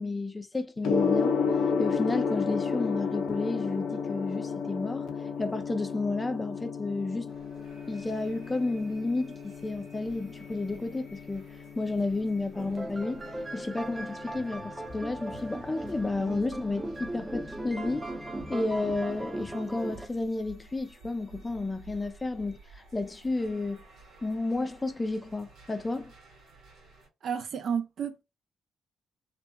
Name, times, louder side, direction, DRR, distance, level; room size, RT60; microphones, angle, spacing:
voice 1, 0.0-1.4 1.8-5.1 5.4-7.3 7.9-11.5 11.8-18.1 18.5-23.8 24.2-26.1, left 2 dB, 25° left, 0.5 m, -32 dB
Gong, 0.8-19.9, left 5 dB, 85° left, 0.5 m, -34 dB
sound 1, 7.3-27.1, right 2 dB, 85° right, 1.4 m, -54 dB
sound 2, 12.5-20.1, right 1 dB, 15° right, 0.8 m, -38 dB
voice 2, 27.2-28.2, right 7 dB, 65° right, 0.5 m, -31 dB
2.8 x 2.5 x 2.2 m
cardioid pair, 70°, 0 cm